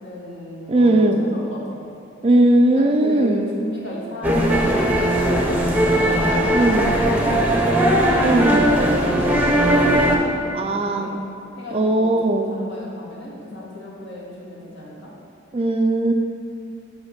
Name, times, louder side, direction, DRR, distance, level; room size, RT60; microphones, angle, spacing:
voice 1, 0.0-1.8 2.8-6.1 6.4-7.7 8.1-11.1 11.6-15.1, left 1 dB, 65° left, -5 dB, 1.8 m, -35 dB
voice 2, 0.7-1.2 2.2-3.5 6.5-6.9 8.2-8.7 10.5-11.2 11.7-12.6 15.5-16.1, right 1 dB, 30° right, 4 dB, 0.4 m, -18 dB
sound 1, 4.2-10.2, right 1 dB, 10° right, 0.7 m, -18 dB
5.9 x 5.5 x 6.5 m, 2.6 s
head